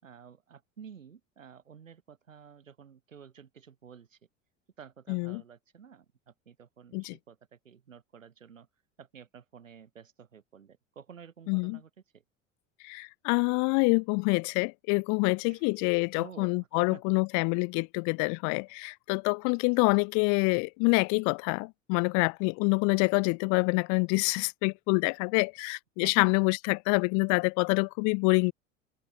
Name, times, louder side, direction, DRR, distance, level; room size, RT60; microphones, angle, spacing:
voice 1, 0.0-4.2 4.8-8.7 9.0-12.2 15.5-15.6 16.1-17.0 26.0-26.3, right 7 dB, 80° right, 5.5 m, -51 dB
voice 2, 5.1-5.4 6.9-7.2 11.5-11.8 12.8-28.5, left 35 dB, 50° left, 0.8 m, -26 dB
figure-of-eight pair, 70°, 38 cm